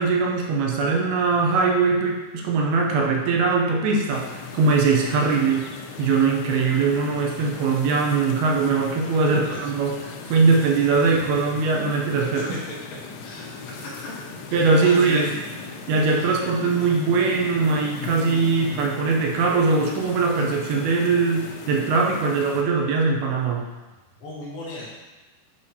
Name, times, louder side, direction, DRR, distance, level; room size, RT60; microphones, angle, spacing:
voice 1, 0.0-5.6 6.0-12.6 14.5-15.3 15.9-23.7, right 4 dB, 85° right, 0 dB, 2.5 m, -21 dB
sound 1, 4.1-22.6, left 5 dB, 85° left, 2.6 m, -38 dB
voice 2, 9.2-9.6 12.2-12.6 13.2-13.9 14.5-15.3 15.7-15.8 24.2-24.9, left 1 dB, 70° left, -5 dB, 2.8 m, -35 dB
8.3 x 4.8 x 2.8 m, 1.1 s
omnidirectional pair, 4.6 m